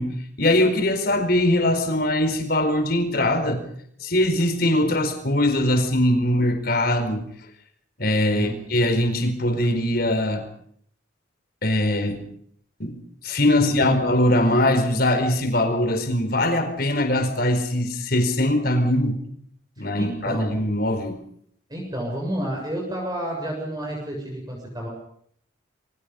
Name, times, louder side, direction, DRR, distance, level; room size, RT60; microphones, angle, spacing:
voice 1, 0.0-3.6 4.0-7.2 8.0-10.5 11.6-12.2 12.8-13.0 13.2-19.2 19.8-21.2, left 1 dB, 50° left, 7 dB, 4.6 m, -21 dB
voice 2, 13.6-14.0 19.8-20.6 21.7-24.9, equal, 20° right, 0 dB, 6.9 m, -30 dB
28.5 x 24.0 x 5.4 m, 0.66 s
head